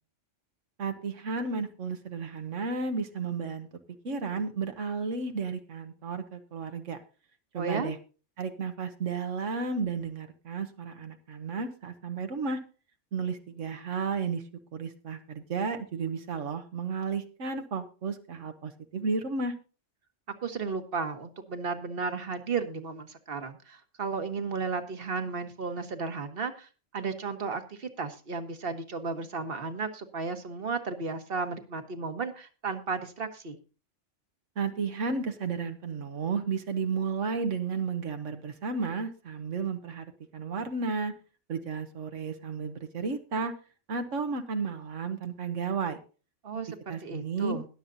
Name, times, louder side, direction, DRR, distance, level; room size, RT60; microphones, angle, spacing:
voice 1, 0.8-3.7 4.0-7.0 7.5-8.0 8.4-12.6 13.1-14.4 14.7-19.5 34.6-40.1 40.3-41.1 41.5-43.5 43.9-46.0 46.9-47.6, right 4 dB, 80° right, 7 dB, 1.5 m, -33 dB
voice 2, 7.5-7.9 20.4-33.6 46.4-47.7, right 4 dB, 50° right, 8 dB, 1.5 m, -34 dB
21.0 x 7.3 x 2.7 m, 0.35 s
omnidirectional pair, 1.3 m